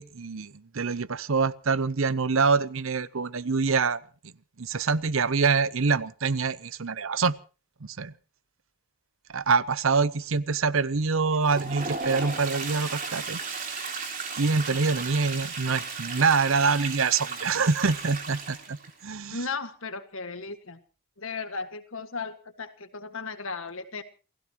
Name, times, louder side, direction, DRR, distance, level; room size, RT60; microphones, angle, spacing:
voice 1, 0.0-4.0 4.6-7.3 7.8-8.1 9.3-13.4 13.7-13.8 14.4-18.8 19.0-19.4, right 4 dB, 65° right, 18 dB, 0.7 m, -25 dB
Toilet flush, 11.3-18.9, right 4 dB, 35° right, 3.3 m, -35 dB
voice 2, 19.3-20.8 21.2-24.0, left 4 dB, 65° left, 9 dB, 1.8 m, -36 dB
28.5 x 16.0 x 3.0 m, 0.35 s
head